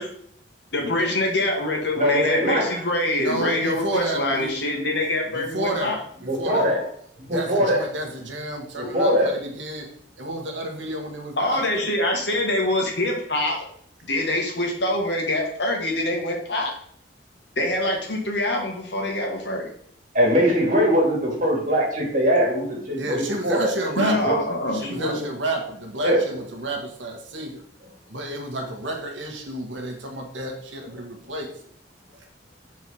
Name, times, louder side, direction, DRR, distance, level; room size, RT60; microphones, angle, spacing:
voice 1, 0.7-6.0 11.4-13.6 14.0-16.7 17.6-19.7 24.0-25.2, left 1 dB, 65° left, 0 dB, 1.7 m, -24 dB
voice 2, 1.9-2.8 6.3-6.9 7.3-7.8 8.8-9.3 20.1-23.6 24.3-24.4 26.0-26.2, equal, 45° right, -2 dB, 2.3 m, -21 dB
voice 3, 3.2-4.5 5.3-5.9 6.2-6.7 7.3-9.8 10.2-11.8 22.9-24.3 24.7-27.6 28.1-31.5, right 1 dB, 90° right, 2 dB, 1.5 m, -30 dB
6.2 x 4.6 x 4.3 m, 0.63 s
head